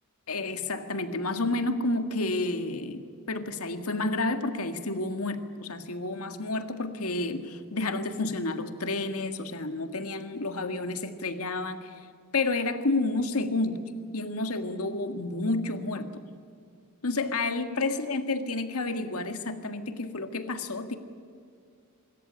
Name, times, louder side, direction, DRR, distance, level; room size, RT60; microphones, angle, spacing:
voice 1, 0.3-11.9 12.3-13.8 14.1-16.2 17.0-20.9, left 2 dB, 80° left, 8 dB, 1.8 m, -30 dB
25.0 x 14.0 x 9.9 m, 2.3 s
head